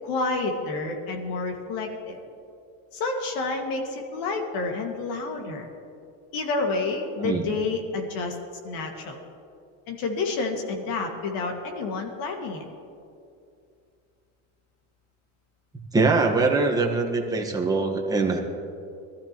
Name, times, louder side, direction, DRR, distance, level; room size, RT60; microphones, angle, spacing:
voice 1, 0.0-2.2 2.9-5.7 6.3-8.4 8.6-9.2 9.9-12.7, left 3 dB, 65° left, 2 dB, 2.1 m, -29 dB
voice 2, 15.9-18.4, right 3 dB, 10° right, 0 dB, 1.4 m, -23 dB
21.0 x 13.5 x 3.1 m, 2.5 s
cardioid pair, 140°, 36 cm